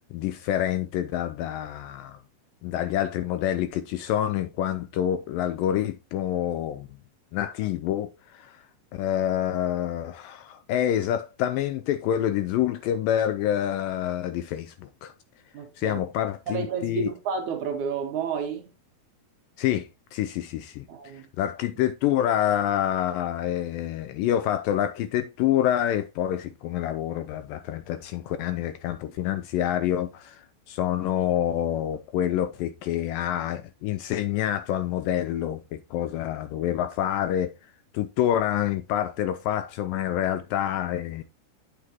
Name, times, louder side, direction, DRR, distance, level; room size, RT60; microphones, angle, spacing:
voice 1, 0.1-2.2 2.6-6.9 7.3-8.6 8.9-15.1 15.8-17.1 19.6-20.9 21.1-37.5 37.9-41.2, left 11 dB, 80° left, 2.0 m, -27 dB
voice 2, 15.5-18.7 20.9-21.3, right 6 dB, 65° right, 2.0 m, -31 dB
8.5 x 8.0 x 2.9 m
omnidirectional pair, 4.4 m